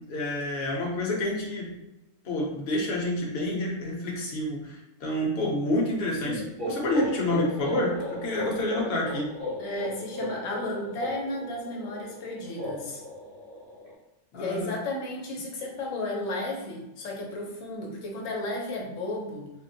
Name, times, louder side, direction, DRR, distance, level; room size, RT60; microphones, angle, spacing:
voice 1, 0.0-1.7 2.2-9.3 14.3-14.7, left 1 dB, 55° left, -2 dB, 0.9 m, -28 dB
sound 1, 6.2-13.9, left 1 dB, 45° right, 1.3 m, -36 dB
voice 2, 9.6-13.0 14.3-19.5, left 1 dB, 90° left, -1 dB, 1.1 m, -33 dB
3.5 x 2.1 x 2.6 m, 0.95 s
omnidirectional pair, 1.3 m